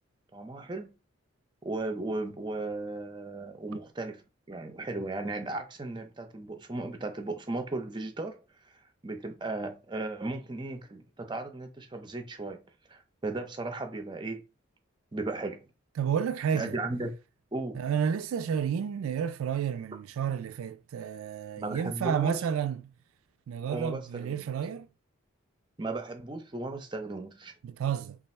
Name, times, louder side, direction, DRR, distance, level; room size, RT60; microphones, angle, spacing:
voice 1, 0.3-1.0 1.6-12.6 12.9-14.4 15.1-15.7 16.5-17.1 17.5-17.8 21.6-22.4 23.7-24.4 25.8-27.5, right 2 dB, 20° right, 0.5 m, -36 dB
voice 2, 16.0-16.7 17.7-22.8 23.5-24.9 27.6-28.2, right 8 dB, 85° right, 0.3 m, -31 dB
3.2 x 2.4 x 4.2 m
head